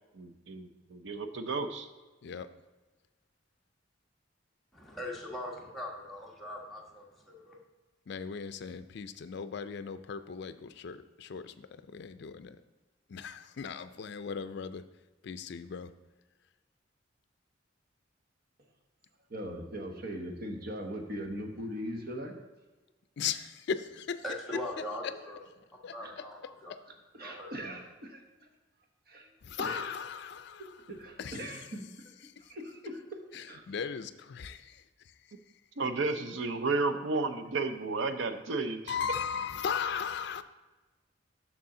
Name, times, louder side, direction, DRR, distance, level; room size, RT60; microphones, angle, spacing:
voice 1, 0.1-1.9 35.8-39.0, right 3 dB, 75° right, 9 dB, 0.6 m, -32 dB
voice 2, 4.7-7.6 24.2-25.4 25.9-26.7 27.2-27.5, left 1 dB, ahead, -4 dB, 1.2 m, -41 dB
voice 3, 8.1-11.7 11.9-12.6 13.1-14.8 15.2-15.9 23.2-24.2 25.0-25.1 25.8-25.9 29.4-30.7 31.2-31.4 33.3-34.8 38.9-40.4, left 6 dB, 60° left, 11 dB, 0.4 m, -37 dB
voice 4, 19.3-22.3 26.0-26.1 27.1-28.5 29.1-29.3 29.6-29.8 30.9-31.9 32.4-33.8, equal, 55° right, 3 dB, 1.0 m, -40 dB
6.9 x 6.1 x 3.7 m, 1.2 s
head